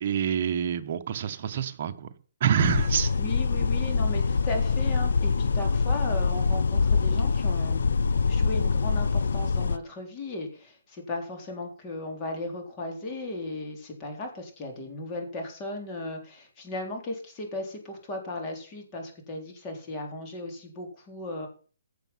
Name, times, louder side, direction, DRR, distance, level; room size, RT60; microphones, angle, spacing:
voice 1, 0.0-2.1 2.4-3.1, right 9 dB, 40° right, 8 dB, 1.3 m, -27 dB
sound 1, 2.6-9.8, left 4 dB, 75° left, 0.7 m, -24 dB
voice 2, 3.2-7.9 8.3-21.5, left 2 dB, 20° left, 2 dB, 3.8 m, -36 dB
15.5 x 7.5 x 5.8 m, 0.40 s
hypercardioid pair, 160°, 0 cm